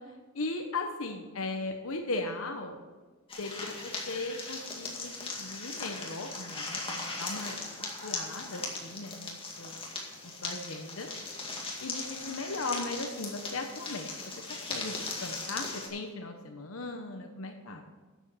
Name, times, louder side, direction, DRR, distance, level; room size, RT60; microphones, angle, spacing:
voice 1, 0.1-2.8 3.4-7.6 8.0-9.9 10.2-11.1 11.8-17.8, left 2 dB, 85° left, 4 dB, 1.0 m, -38 dB
sound 1, 3.3-15.9, left 3 dB, 25° left, 2.1 m, -39 dB
11.5 x 7.2 x 6.3 m, 1.4 s
head